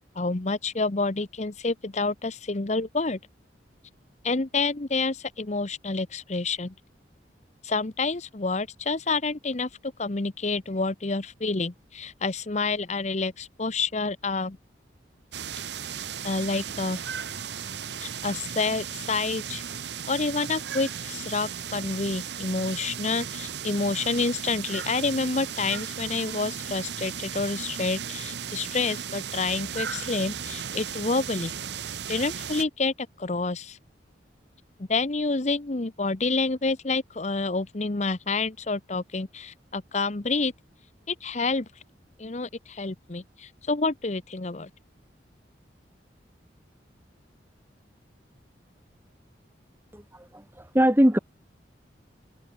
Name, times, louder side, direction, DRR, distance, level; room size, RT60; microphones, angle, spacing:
voice 1, 0.2-3.2 4.2-6.7 7.6-14.6 16.2-17.0 18.0-19.6 20.1-31.5 32.1-33.8 34.9-40.5 41.1-41.7 42.2-44.7, left 3 dB, 40° left, 0.9 m, -28 dB
sound 1, 15.3-32.6, right 7 dB, 70° right, 1.2 m, -36 dB
voice 2, 49.9-51.2, equal, 10° right, 2.1 m, -22 dB
head